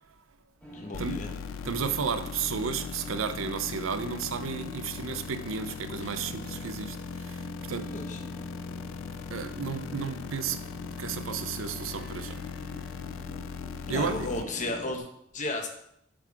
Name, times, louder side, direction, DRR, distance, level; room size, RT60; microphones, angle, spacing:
sound 1, 0.6-15.0, equal, 5° left, 1.2 m, -45 dB
voice 1, 0.7-1.3 6.0-6.1 7.9-8.2 13.9-15.0 15.3-15.7, left 2 dB, 40° left, 0.9 m, -33 dB
sound 2, 0.9-14.5, left 7 dB, 80° left, 0.3 m, -39 dB
voice 2, 1.6-8.0 9.3-10.6 11.0-12.5 13.9-14.3, right 6 dB, 90° right, 0.5 m, -33 dB
7.6 x 3.8 x 4.6 m
head